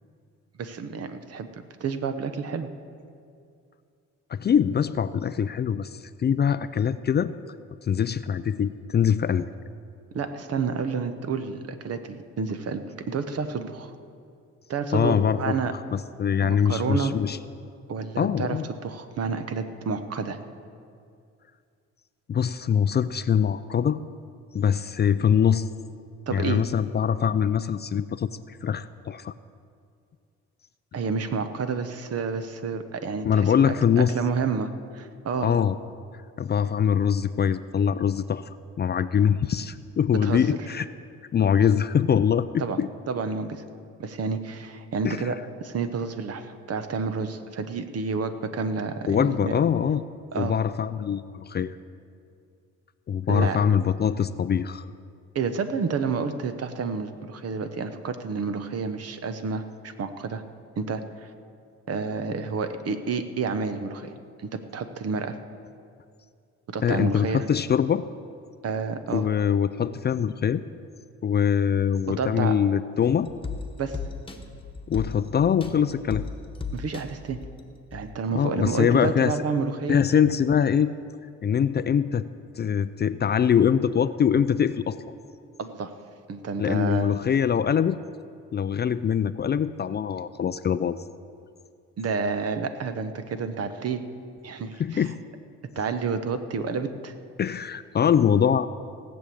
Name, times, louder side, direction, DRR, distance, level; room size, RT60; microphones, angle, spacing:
voice 1, 0.6-1.5 1.8-2.7 10.1-12.8 13.1-13.9 14.7-15.7 16.4-17.1 17.9-20.4 26.3-26.6 30.9-35.5 40.2-40.4 42.6-42.8 43.1-43.6 44.0-49.6 50.3-50.5 53.3-53.6 55.3-60.4 60.8-61.0 61.9-65.4 66.7-67.5 68.6-69.3 72.2-72.5 73.8-74.0 76.7-77.4 77.9-80.0 85.6-85.9 86.3-87.1 92.0-94.0 94.4-95.1 95.7-97.1, right 5 dB, 55° right, 9 dB, 1.0 m, -30 dB
voice 2, 4.3-7.3 7.9-9.5 14.9-15.5 15.9-17.4 18.2-18.7 22.3-24.0 24.5-25.7 26.3-29.3 33.2-34.1 35.4-35.7 36.4-38.4 38.8-40.9 41.3-42.9 45.0-45.2 49.1-50.0 50.3-51.7 53.1-54.8 66.8-68.0 69.1-70.6 71.2-73.3 74.9-76.2 78.3-79.3 79.9-80.9 81.4-82.2 82.6-85.0 86.6-88.0 88.5-91.0 94.8-95.2 97.4-98.7, left 8 dB, 35° left, 13 dB, 0.4 m, -23 dB
sound 1, 73.0-78.2 78.6-78.7, left 4 dB, 15° left, 1.3 m, -37 dB
17.0 x 6.3 x 8.5 m, 2.4 s
cardioid pair, 90°, 30 cm